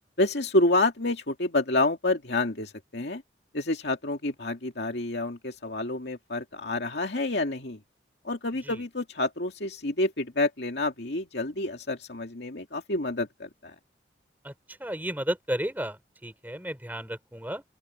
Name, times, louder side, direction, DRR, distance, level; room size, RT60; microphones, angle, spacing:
voice 1, 0.2-3.2 3.5-7.8 8.2-13.7, left 2 dB, 70° left, 2.3 m, -28 dB
voice 2, 14.8-17.6, equal, 10° right, 3.8 m, -33 dB
open air
head